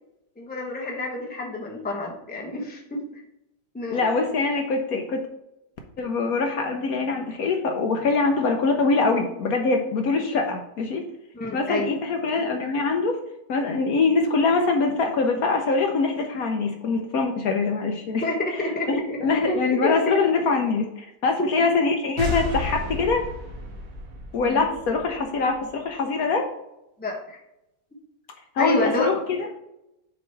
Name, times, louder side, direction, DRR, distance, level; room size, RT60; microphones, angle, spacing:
voice 1, 0.4-3.2 3.7-4.1 11.3-11.9 18.2-19.2 19.5-20.2 24.4-24.6 27.0-27.4 28.6-29.1, left 2 dB, 5° left, -1 dB, 0.8 m, -29 dB
voice 2, 3.9-5.2 6.0-11.0 11.5-13.2 13.5-18.2 19.2-23.2 24.3-26.5 28.6-29.5, left 4 dB, 65° left, 3 dB, 1.1 m, -23 dB
sound 1, 22.2-25.7, equal, 85° right, 1.7 m, -32 dB
7.0 x 3.1 x 4.4 m, 0.88 s
omnidirectional pair, 1.8 m